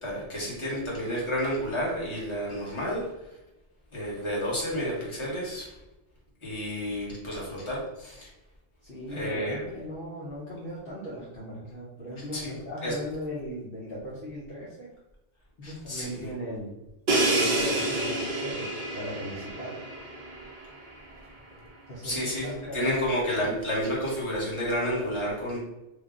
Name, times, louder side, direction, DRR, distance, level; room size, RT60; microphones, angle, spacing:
voice 1, 0.0-3.4 3.9-5.8 6.4-8.3 9.1-9.6 12.3-12.6 12.8-12.9 15.6-16.3 22.0-25.6, equal, 25° left, -6 dB, 1.2 m, -31 dB
voice 2, 8.8-14.9 15.6-16.8 17.3-19.8 21.9-22.9, equal, 55° left, -7 dB, 0.9 m, -38 dB
Crash cymbal, 17.1-20.9, right 2 dB, 45° right, 0.7 m, -28 dB
3.3 x 2.2 x 3.7 m, 0.94 s
omnidirectional pair, 1.2 m